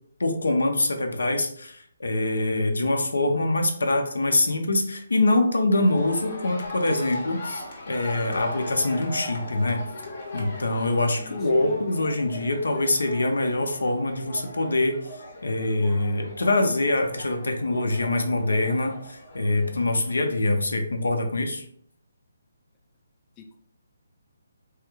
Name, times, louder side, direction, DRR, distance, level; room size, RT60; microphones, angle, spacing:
voice 1, 0.2-9.8 10.3-15.0 15.4-21.6, left 2 dB, 85° left, 5 dB, 0.6 m, -24 dB
sound 1, 5.7-20.1, left 2 dB, 55° left, 0.8 m, -39 dB
voice 2, 11.2-11.8 23.4-23.6, left 6 dB, 20° left, 2 dB, 0.3 m, -45 dB
3.1 x 2.4 x 3.0 m, 0.63 s
hypercardioid pair, 150°, 0 cm